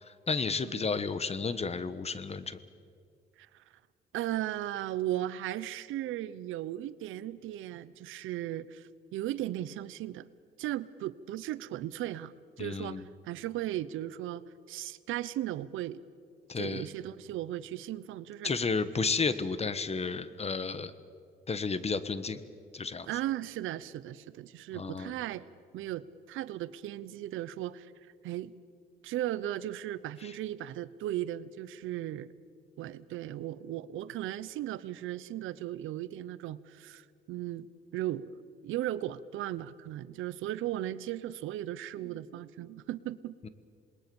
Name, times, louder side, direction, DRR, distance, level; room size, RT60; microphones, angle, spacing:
voice 1, 0.1-2.6 12.6-13.1 16.5-16.9 18.4-20.9 21.5-22.4 22.7-23.1 24.7-25.1 30.2-30.3 43.4-43.5, left 4 dB, 30° left, 13 dB, 1.3 m, -32 dB
voice 2, 4.1-10.3 10.6-12.3 12.6-16.0 16.6-18.5 23.1-25.5 25.7-27.9 28.2-28.5 29.0-32.3 32.8-37.7 37.9-43.3, right 13 dB, 85° right, 17 dB, 0.8 m, -36 dB
27.0 x 20.5 x 7.1 m, 2.2 s
cardioid pair, 90°, 20 cm